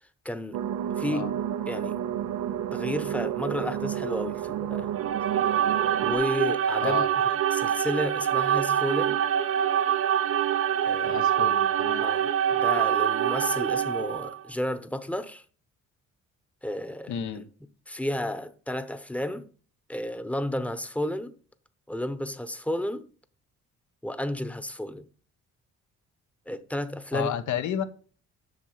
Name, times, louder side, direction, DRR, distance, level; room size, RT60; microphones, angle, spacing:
voice 1, 0.2-0.6 1.0-1.4 1.7-2.0 2.7-4.9 6.0-7.0 7.5-9.2 10.9-11.2 12.0-12.3 12.6-15.4 16.6-17.4 17.9-19.5 19.9-21.3 21.9-23.0 24.0-25.1 26.5-27.3, left 1 dB, 5° left, 0.9 m, -32 dB
sound 1, 0.5-6.1, right 10 dB, 90° right, 0.8 m, -31 dB
sound 2, 4.9-14.4, right 9 dB, 50° right, 0.6 m, -25 dB
voice 2, 11.0-12.1 17.1-17.4 27.1-27.8, left 9 dB, 75° left, 1.1 m, -31 dB
7.9 x 6.0 x 5.7 m
cardioid pair, 90°, 30 cm